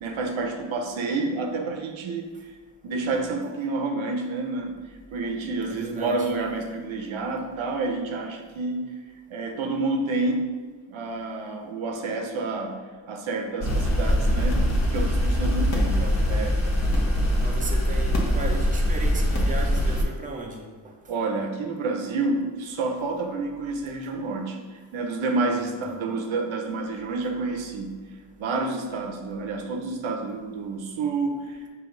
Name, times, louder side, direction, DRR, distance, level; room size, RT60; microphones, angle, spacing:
voice 1, 0.0-2.5 2.8-4.8 5.1-8.8 9.3-10.4 10.9-14.6 14.9-16.6 21.1-24.6 24.9-28.0 28.4-31.7, right 3 dB, 75° right, 3 dB, 0.7 m, -29 dB
voice 2, 5.7-6.3 15.6-16.4 17.0-17.1 17.4-20.6 25.6-25.7, right 2 dB, 15° right, 0 dB, 0.7 m, -36 dB
sound 1, 13.6-20.0, equal, 35° left, 1.0 m, -23 dB
5.0 x 2.7 x 3.8 m, 1.5 s
cardioid pair, 85°, 48 cm